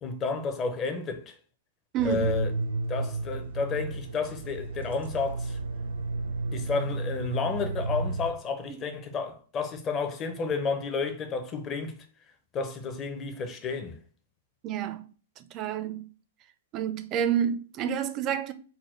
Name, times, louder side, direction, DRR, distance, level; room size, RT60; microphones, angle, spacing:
voice 1, 0.0-1.3 2.0-2.5 2.9-5.6 6.5-12.0 12.5-14.0, left 4 dB, 25° left, 0.7 m, -31 dB
voice 2, 1.9-2.3 8.7-8.8 14.6-15.1 15.4-16.1 16.7-18.5, right 9 dB, 35° right, 0.4 m, -29 dB
Cave temple - atmo orchestral drone thriller, 2.0-8.3, right 3 dB, 85° right, 0.7 m, -32 dB
4.1 x 2.2 x 4.3 m
hypercardioid pair, 135°, 0 cm